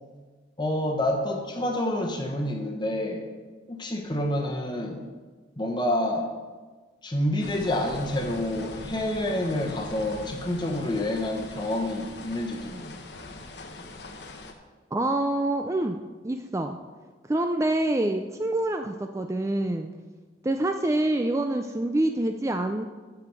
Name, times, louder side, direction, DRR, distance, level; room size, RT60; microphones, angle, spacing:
voice 1, 0.6-3.3 3.7-5.0 5.6-6.3 7.0-13.0, left 1 dB, 25° left, 2 dB, 1.0 m, -28 dB
sound 1, 7.4-14.5, left 2 dB, 70° left, 0.9 m, -42 dB
voice 2, 14.9-16.8 17.3-19.9 20.4-22.8, right 1 dB, 15° right, 5 dB, 0.3 m, -26 dB
8.6 x 6.9 x 6.1 m, 1.4 s
head